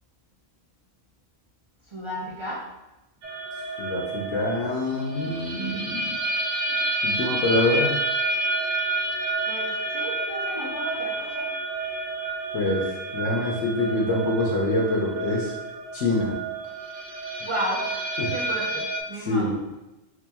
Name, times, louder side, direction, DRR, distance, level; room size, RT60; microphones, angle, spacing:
voice 1, 1.9-2.7 9.5-11.5 17.4-17.9 18.3-19.7, right 1 dB, 55° right, -5 dB, 0.3 m, -33 dB
sound 1, 3.2-19.0, right 2 dB, 70° right, 1.0 m, -29 dB
voice 2, 3.8-6.2 7.0-7.9 12.5-15.6 15.9-16.4 18.2-18.3 19.2-19.5, left 2 dB, 70° left, -3 dB, 1.0 m, -25 dB
3.3 x 2.9 x 3.4 m, 1.0 s
omnidirectional pair, 1.4 m